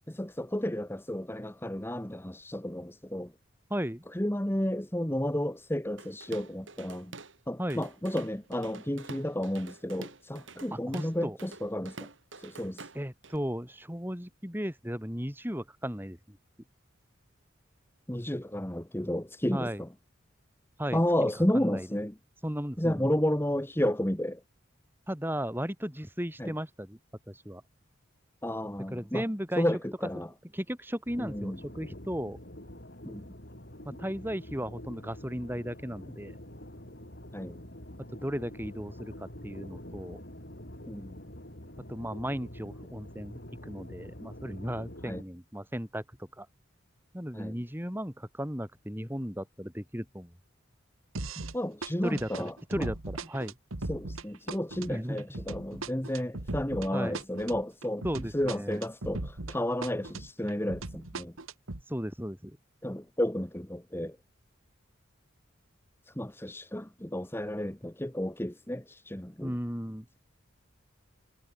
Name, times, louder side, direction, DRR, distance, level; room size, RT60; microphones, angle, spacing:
voice 1, 0.1-3.3 4.1-7.1 7.5-12.1 12.4-12.9 18.1-19.9 20.9-22.2 22.8-24.4 26.4-26.5 28.4-29.2 29.6-30.3 31.2-31.6 33.0-33.3 37.3-37.6 40.9-41.2 45.1-45.2 47.3-47.5 51.5-52.9 53.9-58.0 58.3-61.3 62.8-64.2 66.1-69.5, left 1 dB, 10° left, 1.3 m, -32 dB
voice 2, 3.7-4.0 7.6-7.9 10.7-11.4 12.9-16.4 19.5-19.8 20.8-21.9 22.4-23.1 25.1-27.0 27.3-27.6 28.9-29.7 30.5-32.4 33.8-36.4 38.1-40.2 41.9-46.5 47.1-50.3 52.0-53.5 54.9-55.2 55.7-55.8 56.9-57.2 58.0-58.8 61.9-62.6 69.4-70.1, equal, 10° right, 6.4 m, -35 dB
Drum kit / Drum, 6.0-7.4 7.7-13.4, right 3 dB, 65° right, 3.5 m, -47 dB
sound 1, 31.1-45.2, left 1 dB, 55° left, 6.1 m, -46 dB
sound 2, 51.1-51.6 51.8-59.6 59.8-61.8, right 2 dB, 90° right, 1.9 m, -38 dB
head